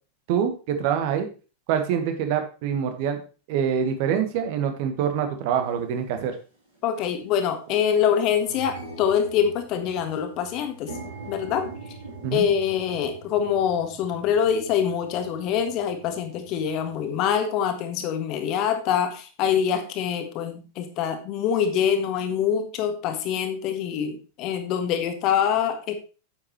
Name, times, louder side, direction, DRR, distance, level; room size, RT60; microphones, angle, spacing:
voice 1, 0.3-1.3 1.7-3.2 3.5-6.3 12.2-12.5, right 8 dB, 45° right, 7 dB, 1.5 m, -25 dB
sound 1, 5.8-5.9 6.7-6.9 7.3-7.4 7.7-17.4, right 2 dB, 80° right, 5.0 m, -43 dB
voice 2, 6.8-10.9 11.3-11.7 12.3-26.0, left 8 dB, 40° left, 7 dB, 1.5 m, -25 dB
9.4 x 7.6 x 3.1 m, 0.34 s
figure-of-eight pair, 90°, 0 cm